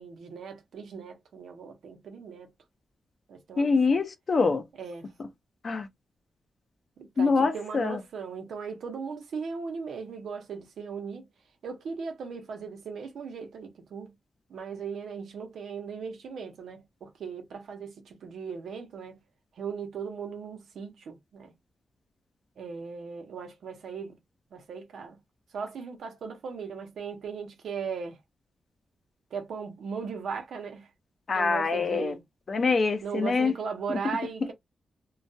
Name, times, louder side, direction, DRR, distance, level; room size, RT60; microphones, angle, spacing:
voice 1, 0.0-2.5 3.3-4.0 4.8-5.1 7.0-11.3 11.6-14.1 14.5-19.2 19.5-21.5 22.6-24.2 24.5-25.2 25.5-28.2 29.3-30.9 31.3-32.2 33.0-34.5, right 5 dB, 85° right, 0.7 m, -38 dB
voice 2, 3.6-4.6 5.6-5.9 7.2-8.0 31.3-32.1 32.5-33.5, left 4 dB, 50° left, 0.6 m, -25 dB
2.3 x 2.2 x 2.6 m
cardioid pair, 90°, 0 cm